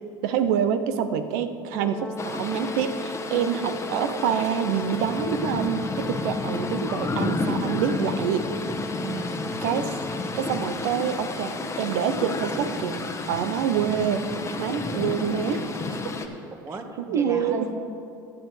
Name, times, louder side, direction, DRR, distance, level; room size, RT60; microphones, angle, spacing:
voice 1, 0.2-8.5 9.6-9.9 10.4-13.0 13.3-14.2 14.6-15.7 17.0-17.7, right 8 dB, 70° right, 9 dB, 0.7 m, -26 dB
Brass instrument, 1.7-10.7, left 2 dB, 10° left, 0.5 m, -36 dB
sound 1, 2.2-16.3, left 3 dB, 25° left, 1.0 m, -31 dB
voice 2, 9.0-9.5 16.6-17.7, right 4 dB, 25° right, 5 dB, 1.4 m, -35 dB
15.0 x 9.7 x 3.3 m, 2.5 s
hypercardioid pair, 80°, 12 cm